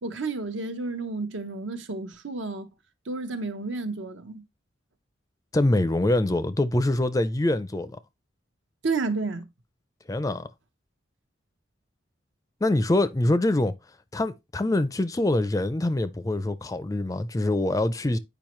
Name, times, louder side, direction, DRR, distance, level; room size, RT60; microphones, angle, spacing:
voice 1, 0.0-2.7 3.1-4.4 8.8-9.4, right 3 dB, 75° right, 0.9 m, -31 dB
voice 2, 5.5-7.9 10.1-10.5 12.6-13.7 14.1-18.2, left 1 dB, 15° left, 0.4 m, -24 dB
8.8 x 5.1 x 3.1 m
head